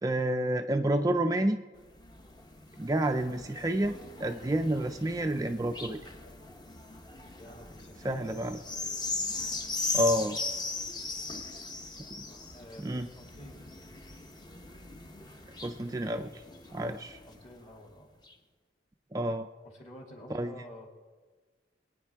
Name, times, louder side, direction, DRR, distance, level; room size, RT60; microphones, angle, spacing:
voice 1, 0.0-1.6 2.8-6.0 8.0-8.6 9.9-10.4 12.2-12.3 12.8-13.1 15.6-16.4 16.7-17.2 19.1-19.5 20.3-20.5, right 1 dB, 20° right, 6 dB, 0.4 m, -29 dB
sound 1, 1.8-17.6 18.3-18.4, left 3 dB, 20° left, 0.8 m, -39 dB
voice 2, 7.3-8.4 12.5-13.6 17.3-18.1 19.6-20.9, equal, 35° left, 0 dB, 2.7 m, -49 dB
24.0 x 9.5 x 3.5 m, 1.4 s
head